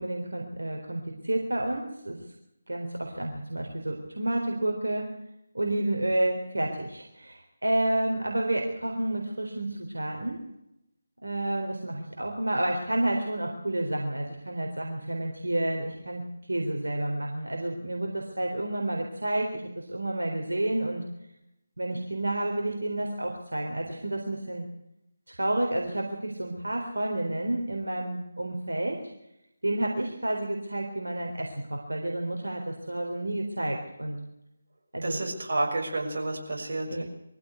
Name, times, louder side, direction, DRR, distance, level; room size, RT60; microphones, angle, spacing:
voice 1, 0.0-2.2 2.7-5.1 5.5-10.4 11.2-16.2 16.5-21.0 21.8-24.7 25.3-29.0 29.6-34.2 34.9-35.2 36.9-37.0, right 1 dB, 75° right, 1 dB, 3.8 m, -30 dB
voice 2, 35.0-37.0, right 2 dB, 60° right, 1 dB, 6.2 m, -30 dB
22.5 x 15.5 x 8.1 m, 0.85 s
figure-of-eight pair, 155°, 0 cm